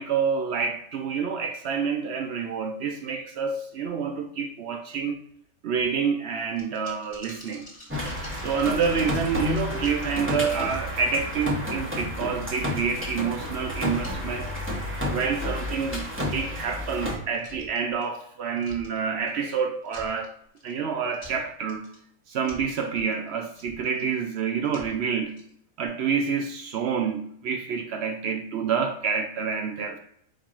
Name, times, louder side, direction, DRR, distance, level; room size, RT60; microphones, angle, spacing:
voice 1, 0.0-5.2 5.6-7.7 8.4-14.5 15.1-20.3 20.6-21.9 22.3-25.4 25.8-30.0, right 6 dB, 65° right, 0.7 m, -28 dB
sound 1, 6.6-11.5 11.9-12.0 13.1-13.6 13.9-15.0 15.3-15.5 15.9-16.2 16.6-16.9 17.3-18.3 18.6-19.5 19.8-20.7 21.1-22.0 22.4-24.1 24.6-25.5 25.8-25.9, left 2 dB, 30° left, 1.4 m, -47 dB
sound 2, 7.9-17.2, left 1 dB, 10° right, 0.9 m, -31 dB
4.6 x 4.4 x 2.4 m
omnidirectional pair, 1.4 m